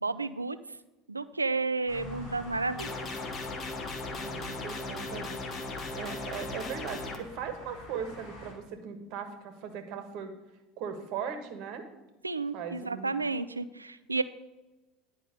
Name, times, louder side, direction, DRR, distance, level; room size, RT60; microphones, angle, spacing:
voice 1, 0.0-0.6 1.1-2.9 12.2-14.2, right 3 dB, 90° right, 14 dB, 0.3 m, -31 dB
sound 1, 1.9-8.5, left 2 dB, 65° left, 3.5 m, -46 dB
sound 2, 2.8-7.2, left 3 dB, 35° left, 1.3 m, -37 dB
voice 2, 4.0-5.4 5.9-10.3 10.8-11.8 12.5-13.1, right 7 dB, 55° right, 7 dB, 1.3 m, -39 dB
10.5 x 5.2 x 5.0 m, 1.1 s
figure-of-eight pair, 70°, 0 cm